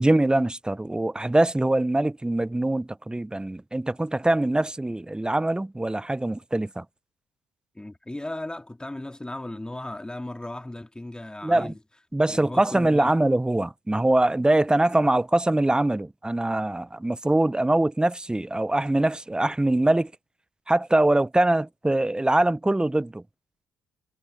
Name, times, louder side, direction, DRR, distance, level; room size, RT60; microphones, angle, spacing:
voice 1, 0.0-6.8 11.4-11.7 12.1-20.1 20.7-23.2, right 1 dB, 10° right, 1.0 m, -23 dB
voice 2, 7.7-11.8 12.3-13.1, left 1 dB, 10° left, 2.6 m, -36 dB
hypercardioid pair, 45°, 7 cm